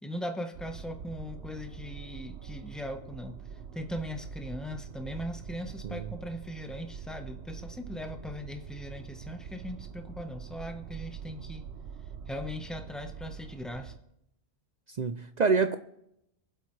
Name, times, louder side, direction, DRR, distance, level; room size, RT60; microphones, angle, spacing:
voice 1, 0.0-3.4 3.7-11.7 12.3-13.9, equal, ahead, 1.1 m, -39 dB
sound 1, 0.5-14.0, right 6 dB, 70° right, 1.0 m, -44 dB
voice 2, 14.9-15.8, right 4 dB, 50° right, 0.6 m, -27 dB
23.5 x 7.9 x 3.2 m
omnidirectional pair, 1.1 m